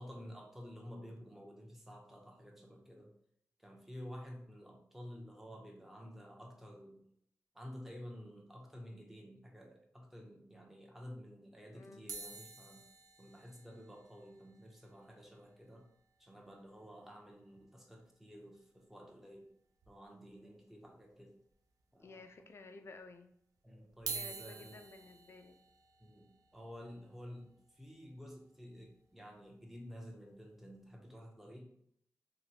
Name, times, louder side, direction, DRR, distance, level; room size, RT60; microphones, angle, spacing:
voice 1, 0.0-3.1 3.6-7.0 7.5-12.9 13.2-15.9 16.2-19.5 19.9-21.4 21.9-22.5 23.6-24.8 26.0-31.7, equal, 5° right, 0 dB, 0.6 m, -51 dB
voice 2, 11.7-12.2 22.0-23.3 24.1-25.6, left 3 dB, 50° left, 7 dB, 0.4 m, -54 dB
sound 1, 12.1-16.4 16.7-16.8 17.0-17.2 17.6-17.7 19.0-19.1 19.8-20.4 20.9-21.0 21.8-21.9 23.9-30.0 30.6-30.8, right 5 dB, 80° right, 0.4 m, -50 dB
2.8 x 2.6 x 2.9 m, 0.70 s
wide cardioid pair, 85°, 6 cm